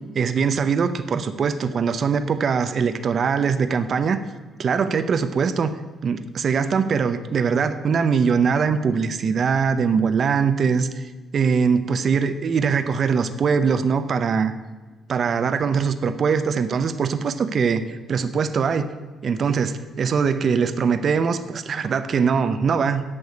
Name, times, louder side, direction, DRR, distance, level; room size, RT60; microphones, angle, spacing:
voice 1, 0.1-4.2 4.6-5.8 6.0-14.5 15.1-18.9 19.2-23.0, right 6 dB, 55° right, 11 dB, 0.7 m, -22 dB
8.6 x 6.3 x 8.4 m, 1.3 s
cardioid pair, 90°, 0 cm